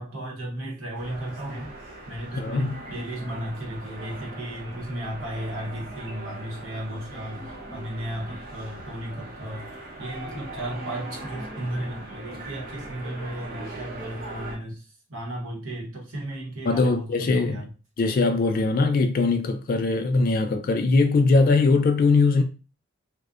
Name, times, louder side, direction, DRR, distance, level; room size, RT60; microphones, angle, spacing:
voice 1, 0.0-1.8 2.1-17.7, right 1 dB, 75° right, 0.9 m, -35 dB
sound 1, 0.9-14.6, right 1 dB, 45° right, 0.7 m, -40 dB
voice 2, 2.4-2.8 16.7-17.6 18.0-22.4, left 3 dB, 45° left, 0.3 m, -21 dB
2.5 x 2.0 x 2.4 m
head